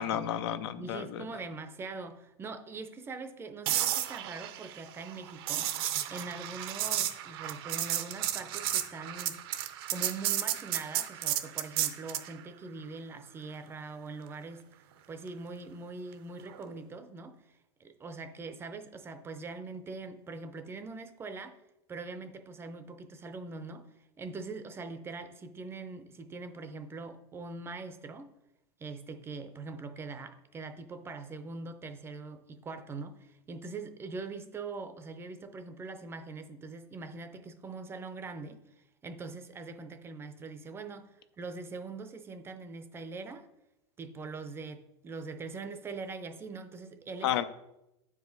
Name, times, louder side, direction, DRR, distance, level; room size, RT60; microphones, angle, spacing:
voice 1, 0.0-1.3 47.2-47.4, left 10 dB, 70° left, 0.6 m, -31 dB
voice 2, 0.8-9.4 9.9-14.6 15.1-17.4 17.8-21.6 21.9-23.9 24.2-28.3 28.8-38.6 39.0-43.5 44.0-47.3, right 3 dB, 15° right, 0.5 m, -42 dB
sound 1, 3.7-12.3 16.5-16.7, right 12 dB, 65° right, 0.7 m, -33 dB
9.0 x 4.9 x 4.0 m
supercardioid pair, 140°, 14 cm